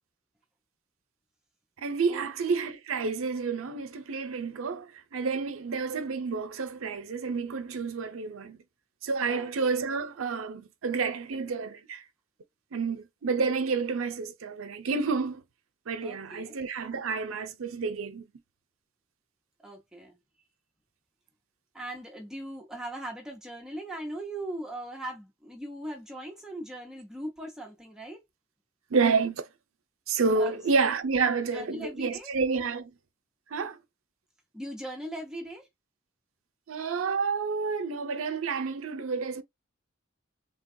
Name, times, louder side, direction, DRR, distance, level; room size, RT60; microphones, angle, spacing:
voice 1, 1.8-8.6 9.0-12.0 12.7-15.4 15.9-18.3 28.9-29.5 30.1-32.9 33.5-33.8 36.7-39.4, right 4 dB, 90° right, 0.6 m, -29 dB
voice 2, 16.0-16.6 19.6-20.2 21.7-28.2 30.3-30.6 31.5-32.3 34.5-35.7, right 1 dB, 5° right, 0.6 m, -39 dB
3.3 x 2.2 x 2.5 m
head